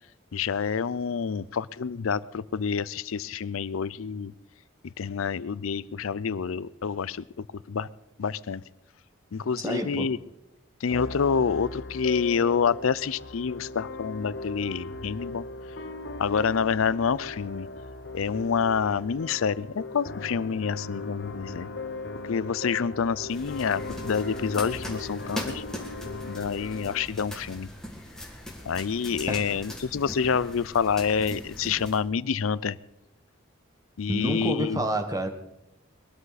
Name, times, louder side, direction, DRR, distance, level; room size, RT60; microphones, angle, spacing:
voice 1, 0.3-4.3 5.0-7.9 8.2-8.6 9.3-10.2 10.8-15.4 16.2-17.7 18.1-21.7 22.3-25.6 26.2-27.7 28.7-32.8 34.0-34.8, left 6 dB, 90° left, 19 dB, 0.5 m, -27 dB
voice 2, 9.6-10.1 29.3-29.6 34.1-35.3, right 1 dB, 15° right, 6 dB, 1.3 m, -29 dB
sound 1, 10.9-27.1, left 2 dB, 55° left, 0.9 m, -38 dB
sound 2, 23.3-32.0, left 1 dB, 5° left, 2.0 m, -40 dB
21.5 x 13.0 x 4.1 m, 0.84 s
head